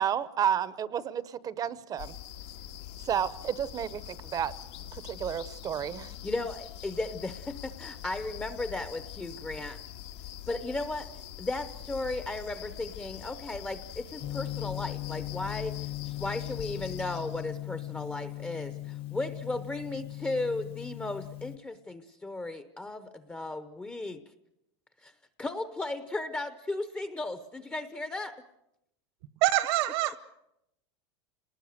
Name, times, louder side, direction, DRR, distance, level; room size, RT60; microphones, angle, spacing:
voice 1, 0.0-2.1 3.0-4.5 5.0-6.1, right 9 dB, 25° right, 0.8 m, -31 dB
sound 1, 2.0-17.5, left 11 dB, 80° left, 2.0 m, -44 dB
voice 2, 6.2-9.8 10.5-11.1 11.4-15.8 16.0-24.2 25.0-25.1 25.4-28.4, left 2 dB, 10° left, 0.8 m, -35 dB
Gong, 14.2-21.6, left 16 dB, 40° left, 1.0 m, -38 dB
voice 3, 29.4-30.2, right 16 dB, 65° right, 1.3 m, -25 dB
27.0 x 19.5 x 6.6 m
supercardioid pair, 140°, 14 cm